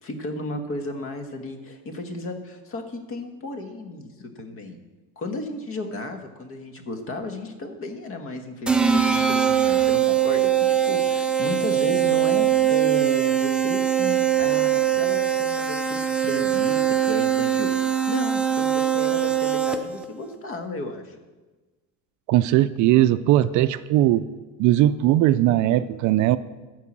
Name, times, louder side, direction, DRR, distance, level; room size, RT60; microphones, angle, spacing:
voice 1, 0.0-4.8 5.2-21.1, left 2 dB, 40° left, 6 dB, 1.4 m, -34 dB
sound 1, 8.7-20.1, right 9 dB, 5° right, 0.4 m, -22 dB
voice 2, 22.3-24.3 24.6-26.4, right 14 dB, 60° right, 13 dB, 0.4 m, -19 dB
13.5 x 4.7 x 7.4 m, 1.2 s
cardioid pair, 145°, 34 cm